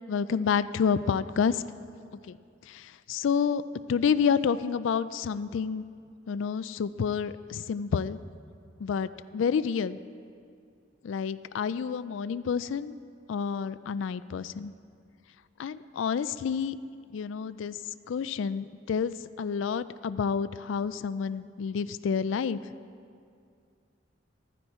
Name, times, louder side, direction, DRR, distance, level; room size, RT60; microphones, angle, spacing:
voice 1, 0.1-1.6 2.3-2.4 2.7-3.6 3.9-5.8 6.3-8.2 8.8-10.0 11.0-13.0 13.3-14.7 15.6-16.8 17.1-17.8 18.1-22.6, left 6 dB, 75° left, 14 dB, 0.3 m, -29 dB
14.5 x 13.5 x 4.3 m, 2.3 s
head